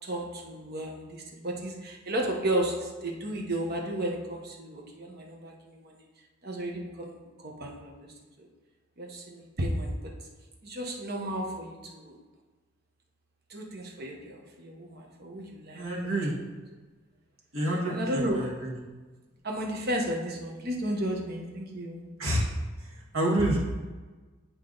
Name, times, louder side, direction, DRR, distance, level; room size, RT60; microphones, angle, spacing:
voice 1, 0.0-6.0 6.4-7.2 7.4-8.5 9.0-10.1 10.6-12.2 13.5-16.2 17.9-18.4 19.4-22.0, right 1 dB, 50° right, 0 dB, 1.2 m, -33 dB
voice 2, 15.7-16.4 17.5-18.5 22.2-22.4 23.1-23.6, right 1 dB, 85° right, -2 dB, 1.8 m, -27 dB
8.9 x 4.7 x 3.9 m, 1.3 s
head